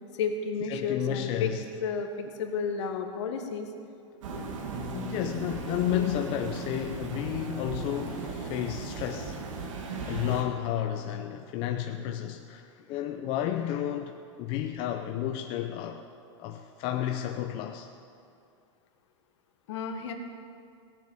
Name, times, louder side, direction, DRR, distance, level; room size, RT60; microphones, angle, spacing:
voice 1, 0.1-1.5 1.8-3.7 4.3-4.5 19.7-20.1, left 5 dB, 65° left, 5 dB, 1.8 m, -32 dB
voice 2, 0.7-1.6 4.9-9.4 10.0-16.0 16.4-17.9, left 11 dB, 35° left, 5 dB, 0.7 m, -32 dB
sound 1, 4.2-10.4, right 4 dB, 80° right, 2.3 m, -37 dB
Bass guitar, 4.7-11.0, left 5 dB, 35° right, 1.5 m, -48 dB
17.5 x 7.4 x 8.6 m, 2.5 s
supercardioid pair, 150°, 16 cm